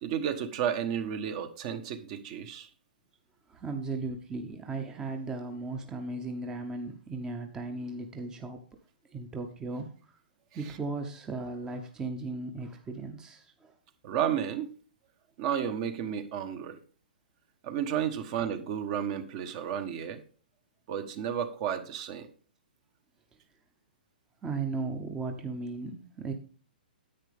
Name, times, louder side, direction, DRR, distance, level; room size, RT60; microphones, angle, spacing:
voice 1, 0.0-2.7 10.6-10.8 14.0-14.7 15.4-16.8 17.6-20.2 20.9-22.3, right 9 dB, 40° right, 9 dB, 1.2 m, -32 dB
voice 2, 3.5-8.6 9.1-9.9 10.5-13.7 24.4-26.3, right 3 dB, 15° right, 5 dB, 0.9 m, -36 dB
10.0 x 8.5 x 3.5 m, 0.40 s
hypercardioid pair, 140°, 5 cm